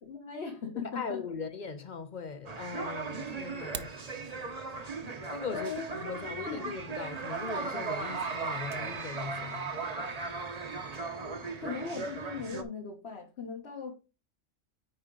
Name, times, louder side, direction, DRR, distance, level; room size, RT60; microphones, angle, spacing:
voice 1, 0.0-1.2 5.5-5.9 6.5-6.7 11.6-13.9, left 5 dB, 55° left, 1.6 m, -38 dB
voice 2, 0.8-4.1 5.3-9.9, left 5 dB, 40° left, 0.9 m, -40 dB
sound 1, 2.5-12.6, right 4 dB, 35° right, 0.9 m, -37 dB
sound 2, 3.5-4.0, right 9 dB, 65° right, 0.9 m, -40 dB
10.0 x 4.4 x 3.9 m
omnidirectional pair, 1.3 m